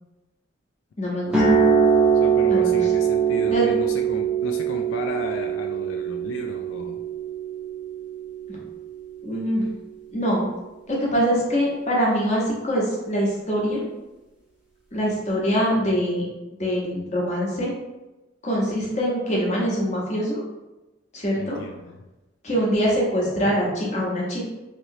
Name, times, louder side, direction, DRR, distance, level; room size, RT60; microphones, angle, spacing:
voice 1, 1.0-1.6 2.5-2.7 3.5-3.7 8.5-8.6 9.2-9.7 10.1-10.5 10.9-13.9 14.9-16.3 16.6-17.7 18.4-20.4 21.1-21.6 22.4-24.4, equal, 35° left, -4 dB, 0.9 m, -24 dB
sound 1, 1.3-9.3, right 6 dB, 5° right, 0.6 m, -22 dB
voice 2, 2.1-7.0 21.4-22.1, left 3 dB, 85° left, 3 dB, 0.3 m, -35 dB
3.0 x 2.9 x 2.7 m, 1.1 s
head